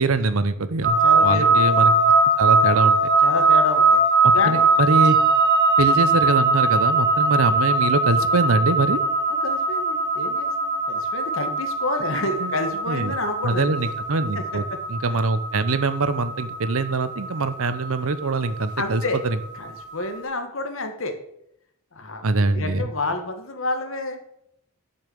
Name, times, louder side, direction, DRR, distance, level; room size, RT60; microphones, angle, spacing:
voice 1, 0.0-1.9 2.4-3.0 4.4-5.2 5.8-9.0 12.4-12.5 12.9-13.1 13.4-14.6 14.9-19.0 22.2-22.8, right 3 dB, 80° right, 13 dB, 0.8 m, -23 dB
sound 1, 0.8-19.9, right 3 dB, 55° right, 1.5 m, -20 dB
voice 2, 1.0-1.6 3.2-4.0 4.3-4.7 9.4-13.7 14.3-14.4 18.8-19.2 19.5-21.2 21.9-24.2, left 2 dB, 70° left, 6 dB, 1.6 m, -29 dB
7.0 x 6.7 x 7.7 m, 0.76 s
head